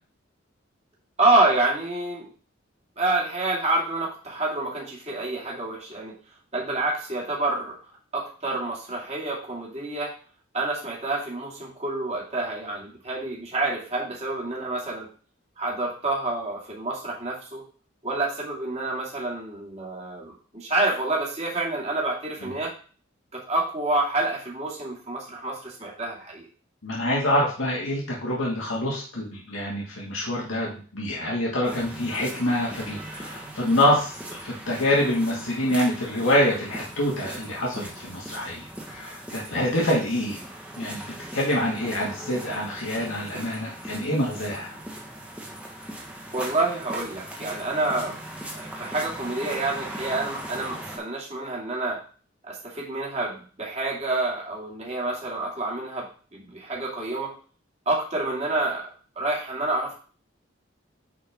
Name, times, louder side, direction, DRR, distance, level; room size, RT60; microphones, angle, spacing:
voice 1, 1.2-2.3 3.0-6.1 6.5-7.8 8.1-10.1 10.5-15.1 15.6-17.7 18.0-22.7 23.3-26.5 46.3-48.2 48.5-52.0 52.5-57.3 57.9-58.9 59.2-59.9, right 2 dB, 35° right, -3 dB, 2.5 m, -28 dB
voice 2, 26.8-40.4 40.8-41.0 41.3-44.7, left 1 dB, 90° left, -4 dB, 2.0 m, -26 dB
sound 1, 31.6-51.0, right 1 dB, 5° right, 1.3 m, -39 dB
9.6 x 4.5 x 3.6 m, 0.39 s
head